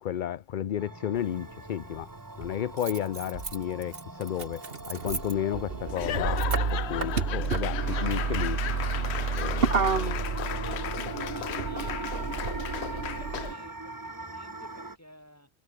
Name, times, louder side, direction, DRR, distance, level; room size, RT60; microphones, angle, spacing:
voice 1, 0.0-2.1 2.4-6.4 6.7-8.6 9.3-9.7, left 10 dB, 55° left, 0.7 m, -32 dB
sound 1, 0.8-15.0, right 2 dB, 20° right, 1.2 m, -42 dB
Motor vehicle (road), 1.2-1.3 2.4-13.5, right 5 dB, 60° right, 1.8 m, -30 dB
Laughter / Applause / Crowd, 5.9-13.7, left 11 dB, 80° left, 0.9 m, -36 dB
voice 2, 9.4-12.6 12.9-15.5, equal, 15° left, 7.6 m, -52 dB
omnidirectional pair, 1.1 m